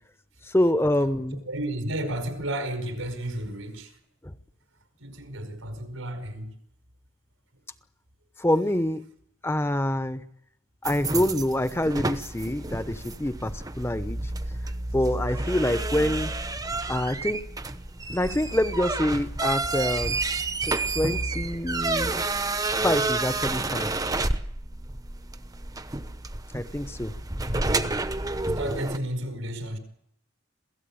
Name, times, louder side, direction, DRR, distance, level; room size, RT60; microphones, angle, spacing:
voice 1, 0.4-1.4 4.2-4.3 8.4-9.0 9.4-10.2 10.8-14.2 14.9-16.4 16.9-17.4 18.1-20.2 20.7-22.2 22.8-23.9 26.5-27.1, left 1 dB, 10° left, 0.8 m, -26 dB
voice 2, 1.5-4.0 5.0-6.5 27.4-27.9 28.4-29.8, right 1 dB, 85° right, 4.9 m, -32 dB
sound 1, 10.8-29.0, right 3 dB, 20° right, 0.9 m, -30 dB
27.0 x 17.0 x 8.7 m
head